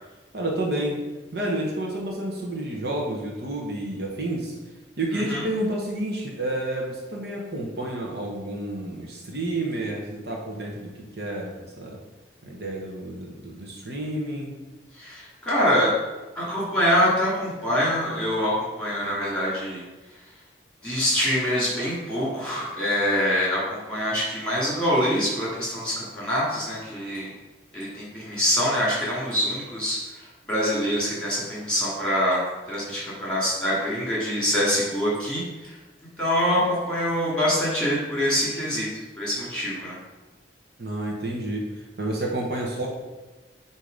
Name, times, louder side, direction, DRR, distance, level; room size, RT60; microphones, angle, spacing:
voice 1, 0.3-1.0 1.3-4.5 5.0-12.0 12.4-14.5 40.8-42.9, right 1 dB, 55° right, -1 dB, 1.0 m, -30 dB
voice 2, 5.1-5.4 14.9-15.9 16.3-19.8 20.8-27.3 27.7-35.8 36.2-40.0, equal, 5° left, -7 dB, 2.3 m, -25 dB
8.2 x 2.9 x 5.2 m, 1.2 s
head